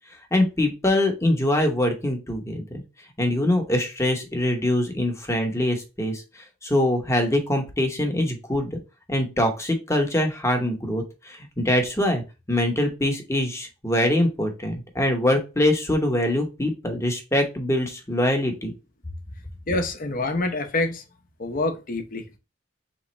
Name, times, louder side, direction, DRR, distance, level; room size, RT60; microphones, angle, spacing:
voice 1, 0.3-2.8 3.2-6.2 6.6-8.8 9.1-12.2 12.5-18.7, left 1 dB, 15° left, 0.9 m, -23 dB
voice 2, 19.7-21.0 21.4-22.4, left 2 dB, 45° left, 0.7 m, -26 dB
3.5 x 3.1 x 4.1 m
head